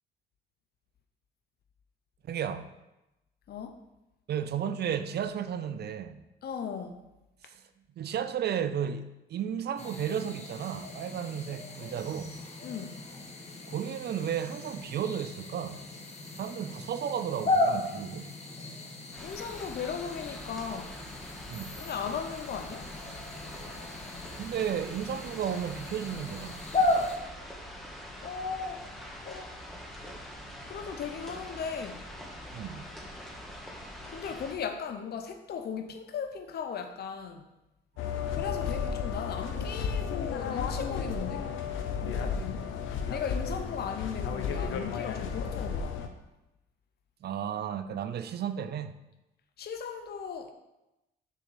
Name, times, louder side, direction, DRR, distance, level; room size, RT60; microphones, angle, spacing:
voice 1, 2.2-2.7 4.3-6.2 7.4-7.6 8.0-12.3 13.7-15.8 16.3-18.3 21.5-21.8 24.3-26.7 32.5-32.9 42.1-42.2 47.2-49.0, right 8 dB, 55° right, 11 dB, 0.5 m, -33 dB
voice 2, 3.5-3.8 6.4-7.0 12.6-13.0 19.2-21.0 21.8-22.9 28.2-28.9 29.2-29.6 30.7-32.0 34.1-37.5 38.3-41.5 42.0-42.6 43.1-46.1 49.6-50.5, left 6 dB, 55° left, 6 dB, 0.7 m, -37 dB
sound 1, 9.8-27.2, left 2 dB, 35° left, 1.4 m, -35 dB
sound 2, 19.1-34.5, equal, ahead, 1.5 m, -44 dB
sound 3, 38.0-46.1, left 6 dB, 80° left, 0.8 m, -33 dB
6.8 x 3.7 x 6.2 m, 0.95 s
cardioid pair, 90°, 20 cm